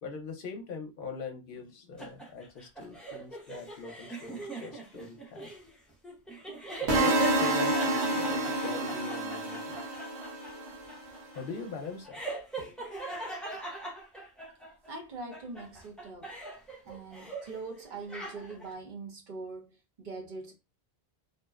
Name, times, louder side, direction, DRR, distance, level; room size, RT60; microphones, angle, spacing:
voice 1, 0.0-5.5 6.8-9.8 11.3-12.2 12.6-12.8, left 4 dB, 60° left, 0.8 m, -42 dB
sound 1, 2.0-14.9 15.3-17.6 17.9-18.7, right 2 dB, ahead, 0.5 m, -41 dB
sound 2, 6.9-10.9, right 2 dB, 75° right, 1.0 m, -28 dB
voice 2, 14.9-16.3 16.8-20.6, right 3 dB, 55° right, 0.8 m, -42 dB
2.6 x 2.0 x 2.3 m
omnidirectional pair, 1.1 m